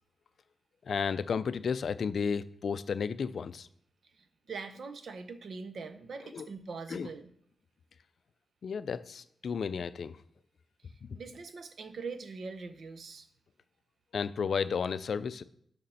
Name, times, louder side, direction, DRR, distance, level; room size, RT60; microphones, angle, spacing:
voice 1, 0.9-3.7 6.3-6.5 6.9-7.1 8.6-10.2 14.1-15.4, left 6 dB, 60° left, 14 dB, 0.4 m, -32 dB
voice 2, 4.1-7.3 10.8-13.3, right 4 dB, 60° right, 10 dB, 0.7 m, -43 dB
6.6 x 5.9 x 5.6 m, 0.68 s
wide cardioid pair, 145°, 0 cm